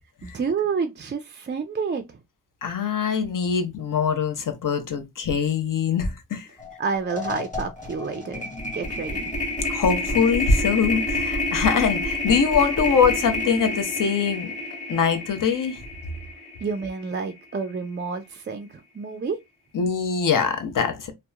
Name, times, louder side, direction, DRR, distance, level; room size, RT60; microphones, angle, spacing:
voice 1, 0.2-2.2 6.8-8.5 8.7-9.3 16.6-19.4, right 5 dB, 30° right, 0.4 m, -29 dB
voice 2, 2.6-6.5 9.7-14.5 14.9-15.8 19.7-21.1, left 6 dB, 55° left, 0.7 m, -23 dB
sound 1, 6.6-6.8 7.1-17.3, left 2 dB, 20° left, 1.3 m, -29 dB
2.8 x 2.1 x 2.3 m
cardioid pair, 50°, 39 cm